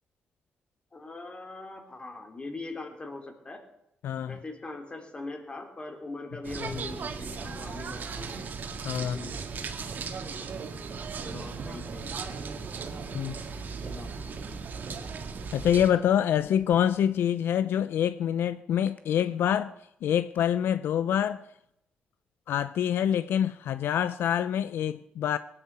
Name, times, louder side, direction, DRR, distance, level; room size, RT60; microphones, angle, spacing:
voice 1, 0.9-3.6 4.3-8.4 9.0-9.5 11.2-12.3 13.8-14.6, left 2 dB, 30° left, 5 dB, 3.2 m, -41 dB
voice 2, 4.0-4.3 6.6-6.7 8.8-9.2 13.1-13.4 15.5-19.7 20.0-21.4 22.5-25.4, left 9 dB, 80° left, 14 dB, 0.5 m, -26 dB
sound 1, 6.4-15.9, right 5 dB, 55° right, 1.8 m, -37 dB
sound 2, 15.9-17.2 18.9-19.2 19.8-20.5, left 4 dB, 45° left, 1.4 m, -51 dB
18.5 x 9.8 x 8.0 m, 0.82 s
cardioid pair, 95°, 4 cm